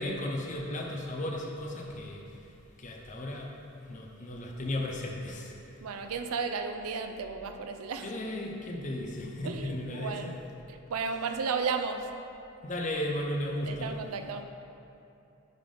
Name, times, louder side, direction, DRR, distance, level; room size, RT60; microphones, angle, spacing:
voice 1, 0.0-2.4 2.8-3.5 3.8-5.6 8.0-10.3 12.6-13.9, left 1 dB, 35° left, 0 dB, 0.6 m, -35 dB
voice 2, 5.8-8.1 9.4-10.3 10.7-12.1 13.7-14.5, right 5 dB, 85° right, 7 dB, 0.4 m, -34 dB
8.8 x 3.5 x 3.8 m, 2.7 s
head